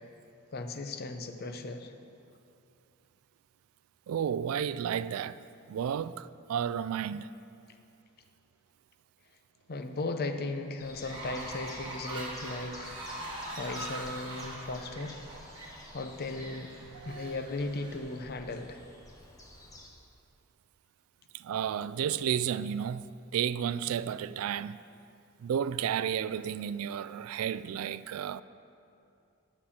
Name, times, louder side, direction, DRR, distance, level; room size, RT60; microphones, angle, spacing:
voice 1, 0.5-1.9 9.7-15.2 15.9-16.7 17.0-18.8, left 2 dB, 45° left, 0.7 m, -37 dB
voice 2, 4.1-5.4 5.7-7.3 16.9-17.4 21.3-24.8 25.4-28.4, right 8 dB, 75° right, 0.3 m, -32 dB
sound 1, 10.8-19.9, left 1 dB, 15° left, 1.1 m, -51 dB
Fowl, 11.0-18.0, right 1 dB, 20° right, 1.5 m, -42 dB
9.4 x 6.6 x 7.2 m
head